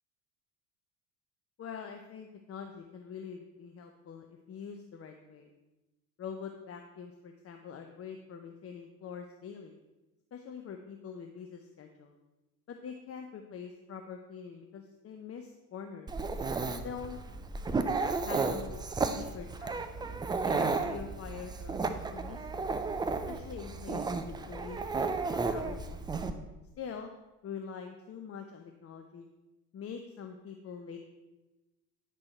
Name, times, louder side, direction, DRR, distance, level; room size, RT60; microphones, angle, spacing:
voice 1, 1.6-5.5 6.2-9.7 10.3-12.1 12.7-16.1 16.7-17.2 18.2-18.8 19.1-19.8 20.4-22.7 23.3-26.0 26.8-27.1 27.4-29.3 29.7-31.0, left 6 dB, 30° left, 5 dB, 0.8 m, -44 dB
Dog, 16.1-26.3, right 4 dB, 10° right, 0.4 m, -33 dB
9.6 x 6.2 x 4.4 m, 1.1 s
figure-of-eight pair, 65°, 50 cm